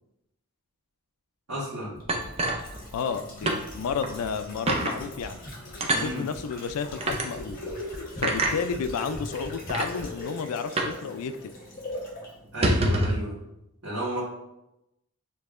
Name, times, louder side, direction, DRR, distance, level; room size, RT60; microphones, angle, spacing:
voice 1, 1.5-1.9 5.9-6.2 12.5-13.3 13.8-14.2, equal, 65° right, -10 dB, 1.4 m, -32 dB
sound 1, 1.9-12.3 12.6-12.7, left 1 dB, 40° left, 1.1 m, -40 dB
sound 2, 2.1-3.2 3.5-3.6 4.0-4.1 4.7-5.0 5.8-6.1 7.0-7.3 8.2-8.6 9.3-9.4 9.7-9.9 10.8-11.0 11.3-11.4 11.7-11.9 12.5-13.2, right 2 dB, 25° right, 0.4 m, -25 dB
voice 2, 2.9-5.4 6.0-7.6 8.2-11.5, left 6 dB, 80° left, 10 dB, 0.4 m, -31 dB
6.8 x 2.7 x 2.5 m, 0.89 s
head